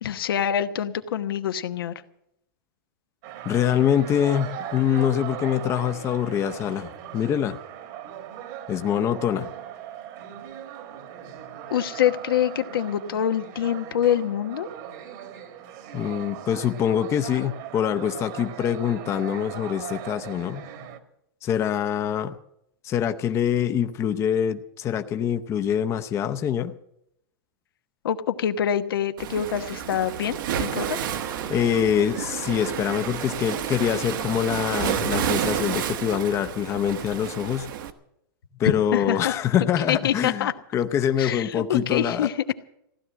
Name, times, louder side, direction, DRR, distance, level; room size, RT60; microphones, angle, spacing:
voice 1, 0.0-1.9 11.7-14.7 28.0-31.0 38.6-39.3 39.9-40.5 41.2-42.5, left 9 dB, 85° left, 9 dB, 1.1 m, -25 dB
sound 1, 3.2-21.0, right 10 dB, 50° right, 1.7 m, -39 dB
voice 2, 3.4-7.6 8.7-9.5 15.9-20.7 21.4-22.3 22.8-26.7 31.5-37.7 38.6-42.3, left 9 dB, 25° left, 8 dB, 0.7 m, -25 dB
Waves surf, 29.2-37.9, right 9 dB, 65° right, 1.2 m, -30 dB
sound 2, 30.8-35.8, right 8 dB, 20° right, 0.5 m, -40 dB
15.5 x 11.0 x 7.5 m, 0.79 s
supercardioid pair, 145°, 12 cm